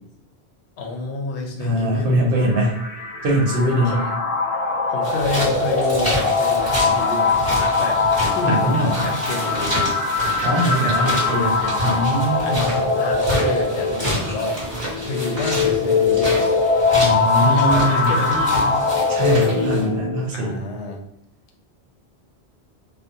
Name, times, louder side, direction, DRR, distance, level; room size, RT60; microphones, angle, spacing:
voice 1, 0.8-2.3 3.8-4.1 4.9-7.4 7.8-8.0 8.3-10.0 10.8-11.8 12.4-14.6 15.0-16.4 17.4-18.9 20.3-21.0, left 2 dB, 85° left, 1 dB, 0.9 m, -29 dB
voice 2, 1.6-2.8 3.2-4.0 8.4-9.1 10.4-12.7 16.9-18.2 19.1-20.6, right 1 dB, 65° right, -1 dB, 0.7 m, -22 dB
sound 1, 2.3-20.3, left 4 dB, 55° left, 0.4 m, -21 dB
sound 2, 5.0-19.9, equal, 15° left, 1.2 m, -29 dB
2.4 x 2.0 x 2.6 m, 0.74 s
omnidirectional pair, 1.1 m